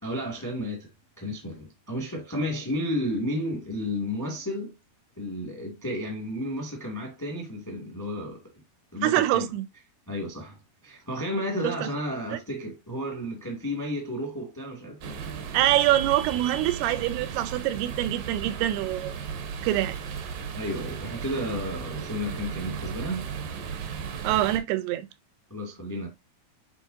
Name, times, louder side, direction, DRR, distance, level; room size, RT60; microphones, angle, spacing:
voice 1, 0.0-0.9 1.2-4.7 5.2-8.4 8.9-9.5 10.1-10.6 10.8-15.1 20.5-23.3 25.5-26.1, left 1 dB, 10° left, 0.8 m, -32 dB
voice 2, 9.0-9.6 11.6-11.9 15.5-19.1 19.6-20.0 24.2-25.1, right 14 dB, 85° right, 2.6 m, -25 dB
sound 1, 15.0-24.6, right 7 dB, 65° right, 2.5 m, -35 dB
9.9 x 3.6 x 2.7 m
omnidirectional pair, 4.7 m